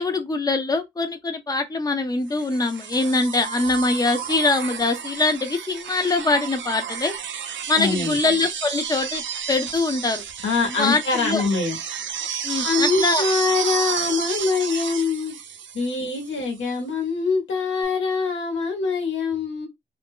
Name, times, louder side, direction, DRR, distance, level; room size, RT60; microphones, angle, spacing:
voice 1, 0.0-7.1 7.7-9.2 9.5-10.2 10.8-11.4 12.4-13.2, left 3 dB, 20° left, 0.7 m, -23 dB
sound 1, 2.4-16.4 17.8-17.9, right 8 dB, 80° right, 0.5 m, -31 dB
voice 2, 7.8-8.2 10.4-11.8 12.6-15.4 15.7-19.7, left 4 dB, 85° left, 1.2 m, -24 dB
2.6 x 2.1 x 3.5 m
cardioid pair, 50°, 19 cm